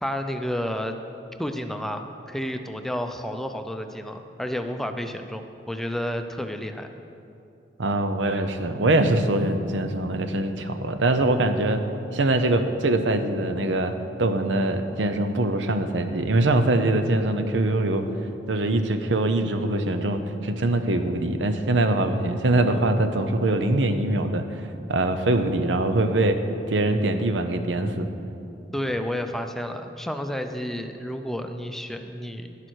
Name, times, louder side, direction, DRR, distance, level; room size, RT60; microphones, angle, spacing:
voice 1, 0.0-1.0 1.4-6.9 28.7-32.6, equal, ahead, 6 dB, 0.5 m, -31 dB
voice 2, 7.8-11.8 12.1-13.9 14.2-18.1 18.5-26.4 26.7-28.1, right 2 dB, 90° right, 8 dB, 0.8 m, -23 dB
11.5 x 11.0 x 4.6 m, 2.7 s
head